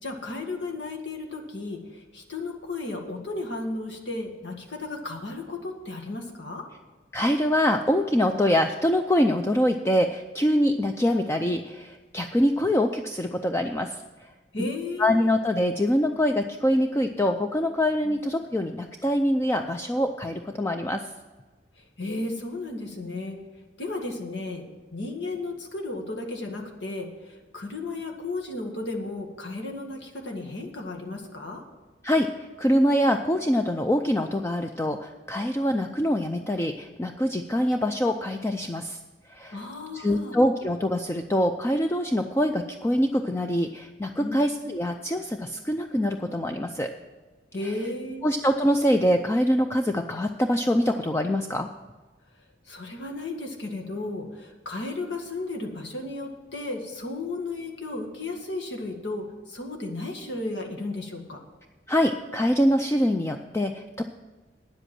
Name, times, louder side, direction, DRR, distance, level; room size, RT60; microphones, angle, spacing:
voice 1, 0.0-6.7 14.5-15.4 18.0-18.1 21.8-23.4 23.8-24.6 24.9-31.6 39.5-40.4 44.2-44.4 47.5-48.3 52.7-61.4, left 2 dB, 80° left, 2 dB, 1.9 m, -34 dB
voice 2, 7.1-14.3 14.6-14.7 15.0-21.1 32.0-39.0 39.3-39.6 39.9-46.9 48.2-51.7 61.9-64.0, equal, 15° left, 5 dB, 0.4 m, -24 dB
9.7 x 8.0 x 7.6 m, 1.3 s
head